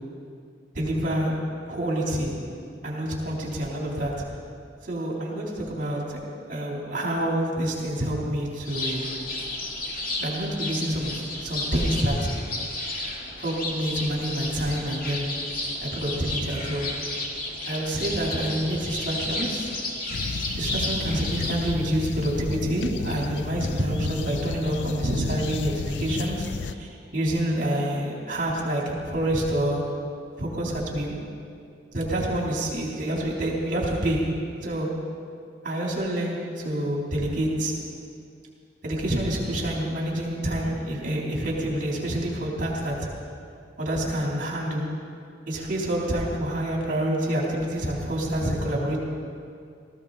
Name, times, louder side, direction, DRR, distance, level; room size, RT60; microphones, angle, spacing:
voice 1, 0.7-1.3 1.7-2.3 2.8-4.1 4.8-6.2 6.5-9.0 10.2-12.3 13.4-15.3 15.8-16.8 17.6-19.7 20.6-29.8 30.4-31.2 31.9-34.3 34.6-34.9 35.6-37.7 38.8-43.0 43.8-44.9 45.5-49.0, right 1 dB, 50° right, -3 dB, 3.5 m, -27 dB
sound 1, 8.6-21.7, left 2 dB, 55° left, 2.1 m, -32 dB
sound 2, 20.1-26.7, left 4 dB, 75° left, 0.5 m, -33 dB
18.0 x 15.0 x 4.2 m, 2.3 s
head